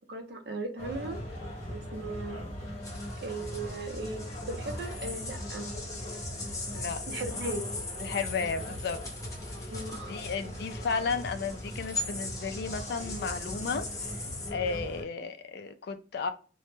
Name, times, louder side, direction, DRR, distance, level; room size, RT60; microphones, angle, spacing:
voice 1, 0.1-1.2 1.7-2.5 3.2-5.7 7.1-7.7 9.7-10.1, right 2 dB, 60° right, 0.5 m, -37 dB
sound 1, 0.8-15.0, equal, 35° left, 1.0 m, -40 dB
sound 2, 2.8-14.5, left 3 dB, 20° left, 0.6 m, -41 dB
voice 2, 8.0-9.0 10.1-13.9 14.5-16.3, left 5 dB, 60° left, 0.3 m, -33 dB
2.1 x 2.0 x 3.0 m
head